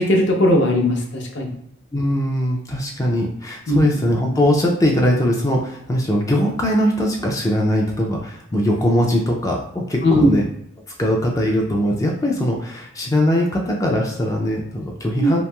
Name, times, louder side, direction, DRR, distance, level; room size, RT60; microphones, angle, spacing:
voice 1, 0.0-1.5 3.7-3.8 10.0-10.3 15.2-15.3, left 1 dB, 60° left, 0 dB, 0.6 m, -17 dB
voice 2, 1.9-10.4 11.0-15.4, equal, 15° left, -1 dB, 0.3 m, -20 dB
2.9 x 2.7 x 2.2 m, 0.74 s
head